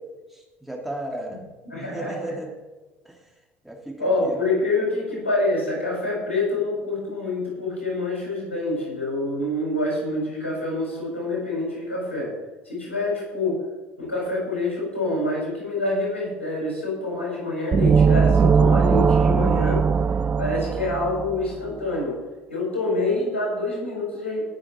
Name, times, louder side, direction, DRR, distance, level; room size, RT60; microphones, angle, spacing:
voice 1, 0.3-1.4 1.7-2.5 3.0-3.2 3.6-4.4, right 1 dB, 5° right, 0 dB, 2.3 m, -34 dB
voice 2, 1.6-2.3 4.0-12.3 12.7-13.6 14.0-19.8 20.4-22.2 22.5-24.4, left 2 dB, 80° left, -3 dB, 4.5 m, -26 dB
sound 1, 17.7-21.5, right 6 dB, 25° right, 0.5 m, -19 dB
17.5 x 6.4 x 4.3 m, 1.2 s
figure-of-eight pair, 60°, 7 cm